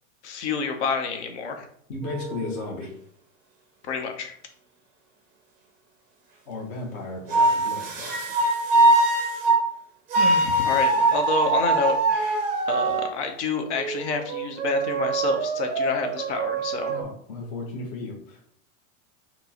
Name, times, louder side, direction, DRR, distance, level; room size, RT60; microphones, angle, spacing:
voice 1, 0.2-1.7 3.9-4.3 10.1-16.9, left 4 dB, 60° left, 5 dB, 0.8 m, -29 dB
voice 2, 1.9-2.9 6.5-8.1 16.9-18.4, left 2 dB, 25° left, -2 dB, 0.5 m, -35 dB
sound 1, 2.0-2.7 7.3-9.6 10.1-13.1 13.8-17.0, right 2 dB, 20° right, 0.5 m, -23 dB
4.4 x 2.0 x 4.0 m, 0.64 s
supercardioid pair, 170°, 40 cm